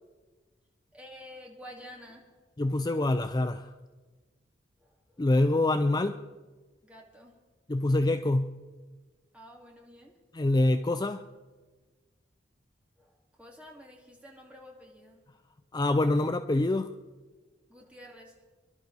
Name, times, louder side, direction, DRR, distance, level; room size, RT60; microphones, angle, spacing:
voice 1, 0.9-2.3 2.6-2.7 4.8-5.2 6.8-7.4 9.3-10.1 13.0-15.2 17.7-18.3, equal, 5° right, -1 dB, 2.5 m, -50 dB
voice 2, 2.6-3.7 5.2-6.2 7.7-8.6 10.3-11.2 15.7-16.9, left 2 dB, 25° left, 8 dB, 0.5 m, -25 dB
26.5 x 12.0 x 4.1 m, 1.3 s
head